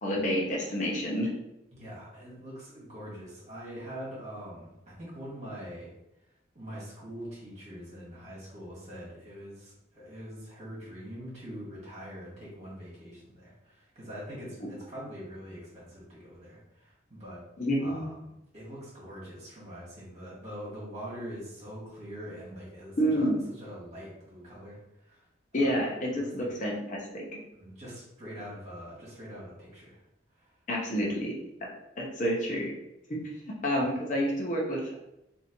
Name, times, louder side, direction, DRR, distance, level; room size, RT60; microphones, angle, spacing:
voice 1, 0.0-1.3 17.6-18.1 23.0-23.4 25.5-27.2 30.7-31.3 31.6-31.7 32.0-32.7 33.1-33.2 33.5-34.9, equal, 40° left, -2 dB, 0.6 m, -29 dB
voice 2, 1.7-5.9 6.5-17.4 17.8-18.3 18.5-23.3 23.6-25.2 25.5-26.5 27.6-30.0 30.4-30.5 30.9-31.1, equal, 35° right, -7 dB, 1.5 m, -43 dB
3.3 x 2.7 x 2.8 m, 0.88 s
head